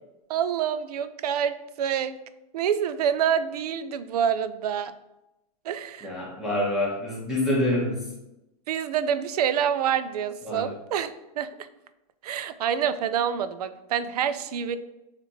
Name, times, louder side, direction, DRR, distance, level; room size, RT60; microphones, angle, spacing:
voice 1, 0.3-2.2 2.5-4.9 5.6-6.1 8.7-11.5 12.2-14.8, right 8 dB, 80° right, 12 dB, 0.4 m, -27 dB
voice 2, 6.0-8.1 10.4-10.7, left 1 dB, ahead, -6 dB, 1.1 m, -26 dB
6.5 x 2.5 x 3.1 m, 0.93 s
supercardioid pair, 145°, 20 cm